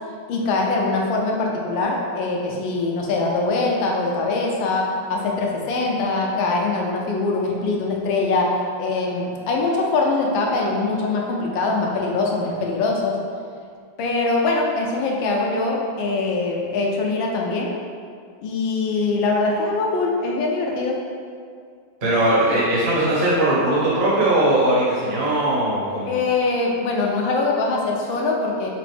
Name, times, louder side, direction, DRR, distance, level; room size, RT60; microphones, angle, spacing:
voice 1, 0.3-13.2 14.0-17.7 18.4-21.0 26.1-28.7, left 3 dB, 75° left, -1 dB, 1.3 m, -23 dB
voice 2, 22.0-26.1, right 1 dB, 40° right, -8 dB, 1.0 m, -19 dB
5.8 x 2.1 x 3.3 m, 2.1 s
omnidirectional pair, 2.3 m